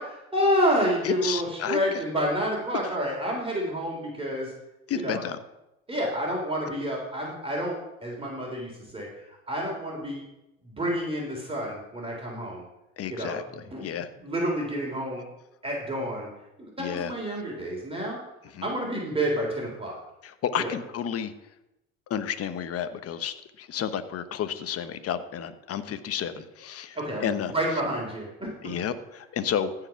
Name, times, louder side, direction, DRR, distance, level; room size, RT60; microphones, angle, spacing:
voice 1, 0.0-4.5 4.9-5.2 5.9-9.1 9.5-10.2 10.6-12.6 13.1-15.2 15.6-16.3 16.6-18.2 18.6-20.0 20.6-20.7 26.9-28.5, equal, 15° right, -2 dB, 3.3 m, -29 dB
voice 2, 1.0-2.0 4.9-5.4 13.0-14.1 16.8-17.1 18.5-18.7 20.2-21.3 22.1-27.5 28.6-29.7, left 8 dB, 45° left, 11 dB, 1.1 m, -31 dB
14.5 x 4.9 x 5.8 m, 0.93 s
hypercardioid pair, 75°, 33 cm